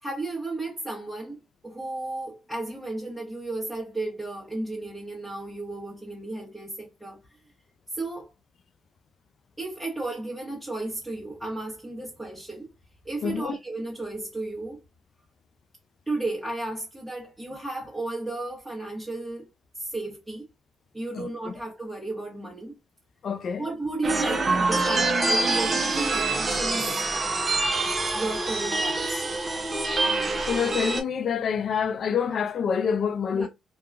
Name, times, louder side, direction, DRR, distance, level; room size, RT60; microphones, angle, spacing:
voice 1, 0.0-7.2 7.9-8.3 9.6-12.7 13.0-14.8 16.1-19.5 19.7-20.5 20.9-22.8 23.6-27.0 28.1-29.2 33.3-33.5, right 2 dB, 10° right, 1.1 m, -33 dB
voice 2, 13.2-13.6 21.1-21.5 23.2-23.7 27.4-27.5 30.4-33.5, left 7 dB, 55° left, 0.3 m, -27 dB
sound 1, 24.0-31.0, right 3 dB, 30° right, 0.6 m, -25 dB
2.7 x 2.3 x 2.4 m
cardioid pair, 90°, 0 cm